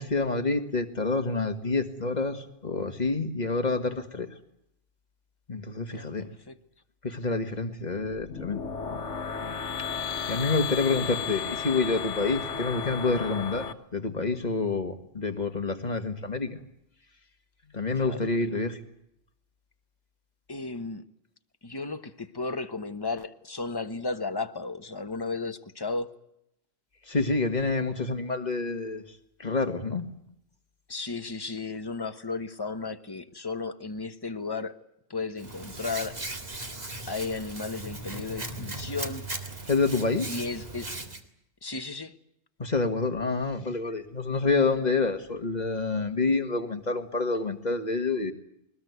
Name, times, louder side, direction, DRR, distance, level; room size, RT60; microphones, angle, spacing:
voice 1, 0.0-4.3 5.5-6.3 7.0-8.6 9.9-13.7 13.9-16.6 17.7-18.8 27.1-29.0 29.4-30.1 39.7-40.3 42.6-48.3, left 3 dB, 35° left, 7 dB, 1.8 m, -28 dB
voice 2, 5.9-6.5 18.0-18.2 20.5-21.0 21.6-26.1 30.9-34.8 35.1-36.2 37.1-39.3 40.3-40.9 41.6-42.1, left 3 dB, 20° left, 9 dB, 1.2 m, -34 dB
sound 1, 8.1-13.7, left 6 dB, 75° left, 1.6 m, -34 dB
Hands, 35.4-41.2, right 2 dB, 35° right, 2.1 m, -38 dB
21.5 x 20.5 x 9.5 m, 0.79 s
omnidirectional pair, 1.3 m